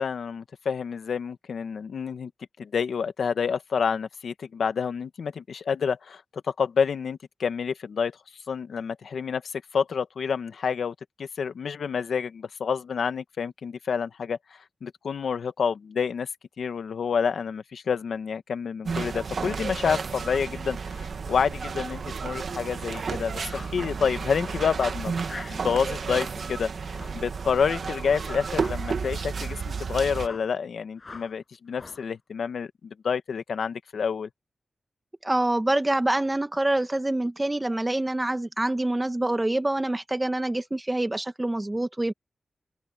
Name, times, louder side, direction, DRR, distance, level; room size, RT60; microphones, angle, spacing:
voice 1, 0.0-2.3 2.6-6.2 6.6-8.2 8.5-14.4 14.8-16.3 16.6-25.1 25.5-26.7 27.1-34.3, left 6 dB, 85° left, 1.3 m, -28 dB
sound 1, 18.9-30.3, right 5 dB, 70° right, 1.8 m, -32 dB
sound 2, 23.4-23.8 24.4-24.7 25.2-25.6 26.0-26.4 26.9-27.3 27.8-28.1 28.5-28.9 29.3-29.6 30.2-30.6 31.0-31.4 31.7-32.1, left 3 dB, 45° left, 7.3 m, -44 dB
voice 2, 35.2-42.1, right 1 dB, 20° right, 1.7 m, -26 dB
wide cardioid pair, 75°, 0 cm